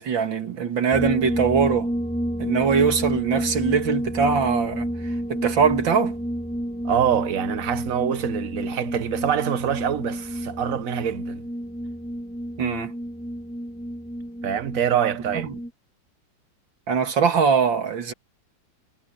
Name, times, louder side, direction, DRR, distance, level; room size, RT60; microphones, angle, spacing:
voice 1, 0.0-1.9 2.4-6.2 12.6-12.9 15.3-15.6 16.9-18.1, right 6 dB, 85° right, 2.8 m, -22 dB
sound 1, 0.9-15.7, equal, 5° left, 2.0 m, -30 dB
voice 2, 6.8-11.4 14.4-15.5, right 9 dB, 50° right, 1.3 m, -25 dB
omnidirectional pair, 2.0 m